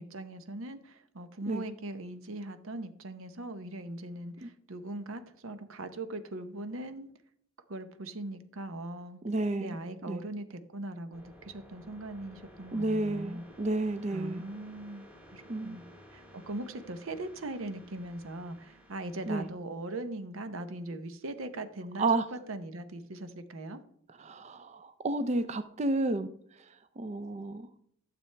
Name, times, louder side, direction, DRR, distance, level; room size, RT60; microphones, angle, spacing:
voice 1, 0.0-7.1 7.7-9.2 9.6-13.4 14.1-23.8, right 2 dB, 80° right, 0.8 m, -40 dB
voice 2, 9.2-9.8 10.1-10.2 12.7-14.4 15.5-15.8 19.3-19.5 22.0-22.2 24.2-26.3 27.0-27.7, right 2 dB, 35° right, 0.4 m, -31 dB
sound 1, 11.1-19.5, equal, 10° right, 1.1 m, -55 dB
12.5 x 6.9 x 3.3 m
head